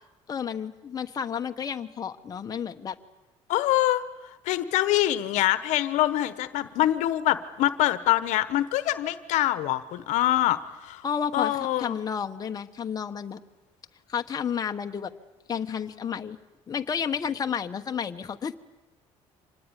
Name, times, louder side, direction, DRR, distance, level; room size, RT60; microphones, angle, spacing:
voice 1, 0.3-3.0 11.0-13.4 14.1-15.1 15.5-16.4 16.7-18.5, left 7 dB, 30° left, 5 dB, 1.2 m, -31 dB
voice 2, 3.5-4.0 4.4-11.0 11.3-12.0, left 14 dB, 80° left, 13 dB, 1.1 m, -24 dB
26.0 x 19.5 x 9.8 m, 1.1 s
cardioid pair, 115°, 12 cm